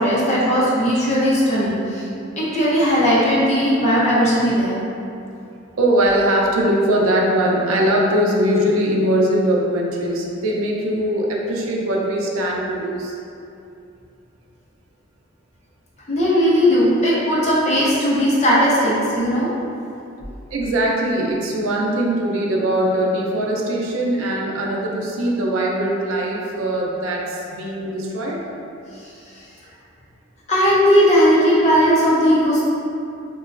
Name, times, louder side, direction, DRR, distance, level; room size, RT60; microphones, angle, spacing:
voice 1, 0.0-2.1 2.4-4.8 16.1-19.5 30.5-32.6, equal, 35° left, -6 dB, 0.5 m, -17 dB
voice 2, 5.8-13.1 20.5-28.4, right 1 dB, 90° right, -1 dB, 0.4 m, -21 dB
3.0 x 2.2 x 2.4 m, 2.6 s
head